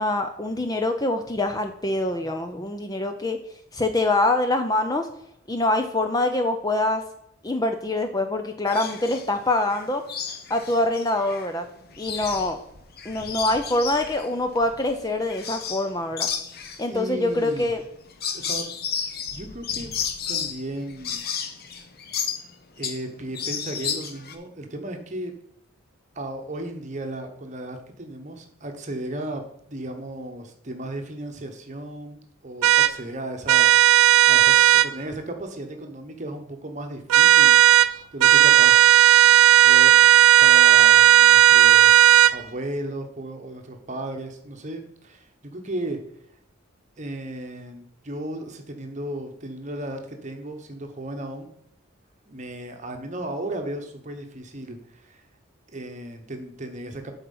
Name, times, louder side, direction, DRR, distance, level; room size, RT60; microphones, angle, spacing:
voice 1, 0.0-3.4 3.7-5.1 5.5-7.0 7.4-10.0 10.5-11.6 12.0-12.6 13.0-16.3 16.8-17.8, left 2 dB, 15° left, 6 dB, 0.5 m, -24 dB
sound 1, 8.7-9.3 9.7-11.5 11.8-15.9 16.2-23.1 23.3-24.3, left 7 dB, 45° left, 0.8 m, -32 dB
voice 2, 16.8-17.7 18.3-18.7 18.9-19.9 20.3-21.2 22.8-25.3 26.1-38.9 39.5-39.9 40.4-46.0 47.0-51.5 52.3-55.2 55.7-57.1, right 1 dB, 35° right, 5 dB, 1.0 m, -35 dB
sound 2, 32.6-32.9 33.5-34.9 37.1-37.9 38.2-42.4, right 12 dB, 80° right, 0.3 m, -14 dB
7.9 x 4.3 x 5.5 m, 0.74 s
head